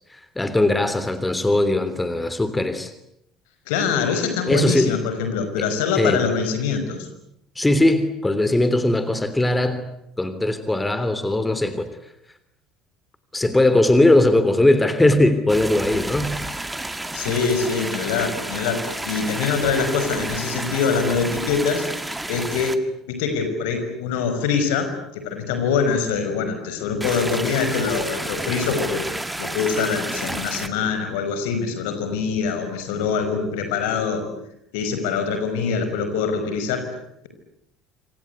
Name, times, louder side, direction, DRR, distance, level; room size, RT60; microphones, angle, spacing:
voice 1, 0.1-2.9 4.5-4.9 5.6-5.7 6.0-6.2 7.5-9.8 10.2-11.9 13.3-16.4, left 1 dB, 10° left, 11 dB, 3.2 m, -19 dB
voice 2, 3.7-7.1 17.1-21.9 22.3-22.8 23.1-34.3 34.7-36.9, left 5 dB, 65° left, 7 dB, 5.6 m, -24 dB
sound 1, 15.5-22.8 27.0-30.7, right 1 dB, 10° right, 2.2 m, -30 dB
27.0 x 26.5 x 8.3 m, 0.80 s
figure-of-eight pair, 60°, 0 cm